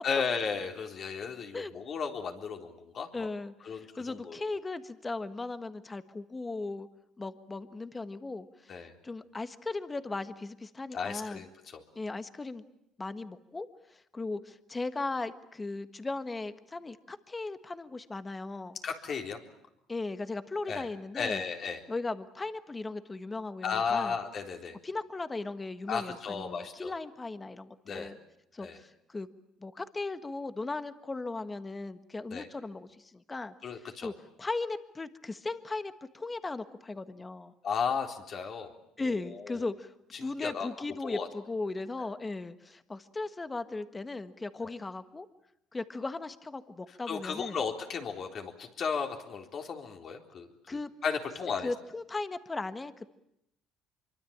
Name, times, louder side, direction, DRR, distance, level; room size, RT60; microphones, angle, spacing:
voice 1, 0.0-3.3 3.6-4.5 8.7-8.9 10.9-11.8 18.8-19.4 20.7-20.9 21.1-21.8 23.6-24.7 25.9-26.9 27.8-28.1 28.6-28.8 32.3-32.5 33.6-34.1 37.6-38.7 39.0-39.7 40.1-40.7 41.0-41.3 42.0-42.1 44.6-44.7 47.1-51.7, left 6 dB, 50° left, 3 dB, 3.8 m, -35 dB
voice 2, 3.1-6.9 7.2-8.7 9.0-11.4 11.9-12.6 13.0-13.7 13.9-18.8 19.9-21.4 21.9-24.1 24.8-28.2 28.5-29.3 29.6-33.5 34.0-34.1 34.4-37.5 39.0-39.9 40.2-45.3 45.7-47.6 50.7-50.9 51.6-53.1, left 3 dB, 20° left, 11 dB, 1.5 m, -37 dB
25.5 x 23.5 x 8.8 m, 0.80 s
cardioid pair, 105°, 0 cm